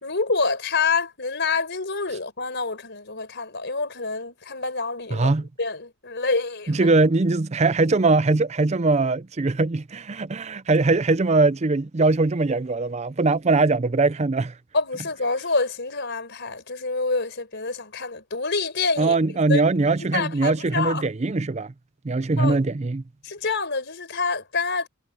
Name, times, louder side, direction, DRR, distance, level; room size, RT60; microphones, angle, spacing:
voice 1, 0.0-5.3 5.6-6.9 14.7-19.2 19.5-19.6 20.1-21.1 22.4-22.6 23.2-24.9, left 4 dB, 50° left, 4.7 m, -27 dB
voice 2, 5.1-5.4 6.7-14.5 19.0-21.7 22.0-23.0, right 3 dB, 30° right, 0.5 m, -21 dB
head